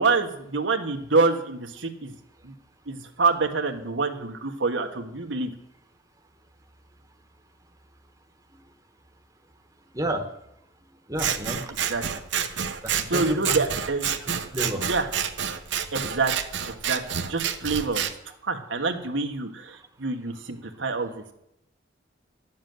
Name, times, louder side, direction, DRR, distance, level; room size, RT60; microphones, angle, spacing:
voice 1, 0.0-2.1 2.4-2.5 2.9-5.5 11.9-12.0 13.1-14.1 14.8-15.1 15.9-16.3 16.8-18.0 18.5-21.2, right 3 dB, 85° right, 4 dB, 1.5 m, -26 dB
voice 2, 11.1-11.7 12.8-13.6 14.5-14.9, right 1 dB, 20° right, 5 dB, 1.2 m, -30 dB
Scissors, 11.2-18.1, right 8 dB, 70° right, 1.0 m, -29 dB
12.0 x 7.4 x 9.4 m, 0.80 s
head